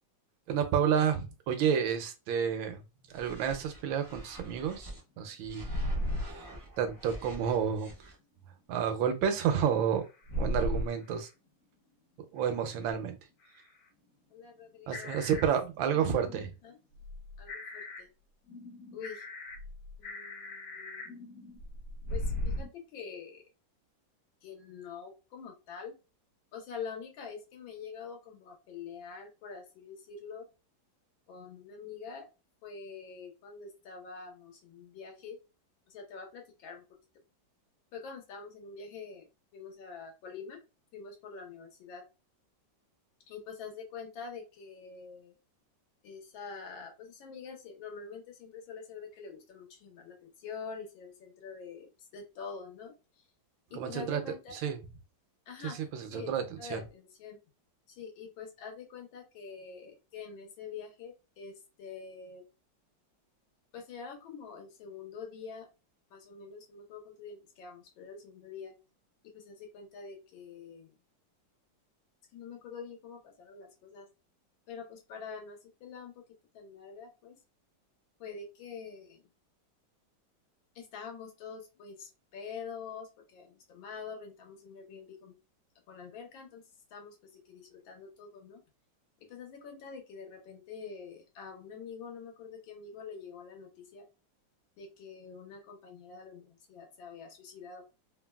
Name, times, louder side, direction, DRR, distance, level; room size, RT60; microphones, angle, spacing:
voice 1, 0.5-2.8 3.1-4.9 5.2-5.7 6.2-6.3 6.8-7.9 8.7-10.0 10.4-11.3 12.3-13.2 14.9-16.5 53.8-54.2 54.6-54.8 55.6-56.8, right 8 dB, 90° right, 7 dB, 1.4 m, -30 dB
sound 1, 3.1-5.0 5.4-8.1, right 1 dB, 20° right, 0.5 m, -48 dB
sound 2, 5.7-6.3 6.8-6.9 9.3-9.4 10.3-10.9 12.4-12.5 12.9-13.0 13.4-13.5 14.9-15.5 15.9-16.5 16.9-18.0 18.5-22.7, left 1 dB, 60° left, 1.2 m, -36 dB
voice 2, 14.3-15.5 15.8-15.9 16.6-16.8 17.4-18.1 18.9-19.2 20.0-21.2 22.1-23.4 24.4-25.9 26.5-30.5 31.3-32.3 32.6-35.4 35.9-36.8 37.9-39.3 39.5-40.6 40.9-42.1 43.3-45.3 46.0-53.2 53.7-54.6 55.5-55.8 56.1-57.4 57.9-62.4 63.7-65.7 66.1-68.7 69.2-70.9 72.3-74.1 74.7-76.2 76.5-77.4 78.2-79.3 80.8-85.3 85.9-86.6 86.9-88.6 89.2-94.1 94.8-97.8, left 5 dB, 85° left, 2 dB, 1.7 m, -46 dB
3.9 x 2.1 x 2.2 m, 0.28 s
omnidirectional pair, 2.1 m